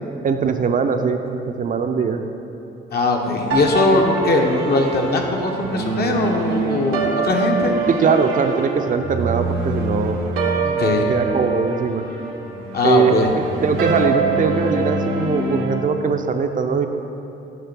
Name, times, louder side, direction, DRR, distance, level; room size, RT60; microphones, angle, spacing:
voice 1, 0.2-2.2 7.9-10.2 11.1-12.0 12.8-16.9, right 5 dB, 45° right, 6 dB, 0.5 m, -21 dB
voice 2, 2.9-7.7 10.6-11.1 12.7-13.3, left 2 dB, 55° left, 2 dB, 0.9 m, -20 dB
sound 1, 3.5-15.7, right 3 dB, 90° right, 1.0 m, -24 dB
9.3 x 3.1 x 5.9 m, 2.8 s
cardioid pair, 90°, 20 cm